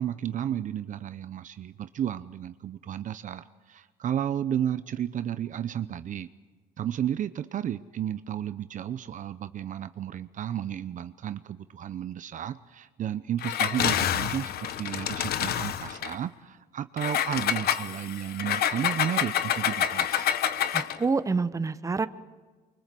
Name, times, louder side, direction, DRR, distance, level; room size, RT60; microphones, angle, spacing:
voice 1, 0.0-6.3 6.8-20.4, right 10 dB, 50° right, 12 dB, 0.8 m, -33 dB
Engine, 13.4-16.2 17.0-21.0, left 10 dB, 65° left, 1.1 m, -28 dB
voice 2, 20.7-22.1, right 4 dB, 20° right, 12 dB, 1.0 m, -27 dB
25.0 x 23.5 x 7.7 m, 1.4 s
cardioid pair, 110°, 17 cm